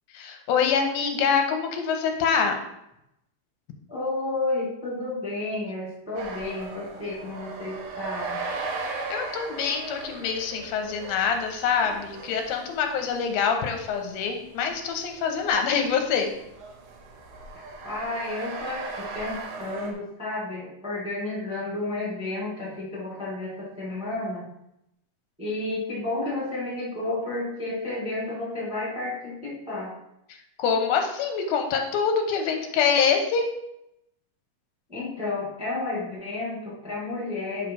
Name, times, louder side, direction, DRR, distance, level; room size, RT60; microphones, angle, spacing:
voice 1, 0.1-2.6 9.1-16.3 30.6-33.5, left 6 dB, 85° left, 4 dB, 2.7 m, -25 dB
voice 2, 3.9-8.4 17.8-24.5 25.4-29.9 34.9-37.7, left 2 dB, ahead, -6 dB, 1.5 m, -31 dB
sound 1, 6.2-19.9, right 3 dB, 75° right, 2.8 m, -38 dB
8.2 x 3.8 x 5.5 m, 0.82 s
omnidirectional pair, 4.2 m